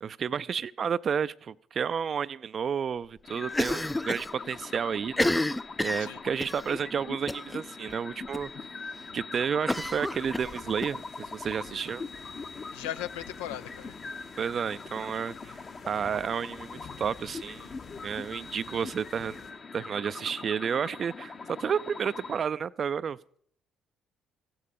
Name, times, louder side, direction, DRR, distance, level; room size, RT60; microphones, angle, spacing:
voice 1, 0.0-5.4 5.8-8.7 9.1-12.0 14.4-17.7 18.0-19.4 19.7-23.4, right 7 dB, 50° right, 0.4 m, -31 dB
sound 1, 3.2-22.4, left 4 dB, 40° left, 1.0 m, -42 dB
Cough, 3.5-4.3 4.6-4.7 5.1-6.6 7.3-7.6 7.9-8.0 8.3-8.4 9.7-10.9, left 1 dB, 15° left, 0.4 m, -30 dB
sound 2, 9.7-19.5, left 5 dB, 55° left, 2.3 m, -52 dB
voice 2, 12.7-13.9, left 12 dB, 75° left, 0.4 m, -37 dB
15.5 x 8.6 x 5.3 m
hypercardioid pair, 45°, 0 cm